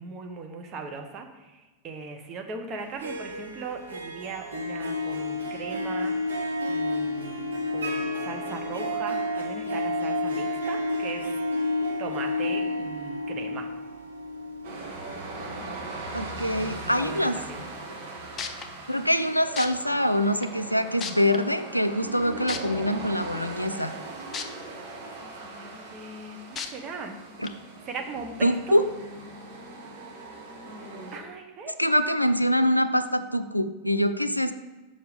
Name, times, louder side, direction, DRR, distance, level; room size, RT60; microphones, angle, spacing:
voice 1, 0.0-6.1 6.7-11.3 12.0-13.7 16.8-17.6 24.8-27.2 27.9-28.8 31.1-31.8, right 4 dB, 30° right, 4 dB, 1.1 m, -39 dB
Harp, 2.8-16.8, left 1 dB, 70° right, 1.2 m, -31 dB
sound 1, 14.6-31.2, right 3 dB, 50° right, 1.7 m, -40 dB
voice 2, 16.1-17.4 18.9-23.9 27.4-27.5 28.4-28.8 31.8-34.5, equal, 90° left, 10 dB, 0.4 m, -24 dB
sound 2, 18.0-18.1 18.4-18.6 19.6-19.7 20.4-20.5 21.0-21.4 22.5-22.6 24.3-24.4 25.0-25.1 26.6-26.7 27.4-27.5, left 6 dB, 25° left, 0.6 m, -32 dB
6.9 x 5.6 x 5.1 m, 1.2 s
figure-of-eight pair, 90°, 0 cm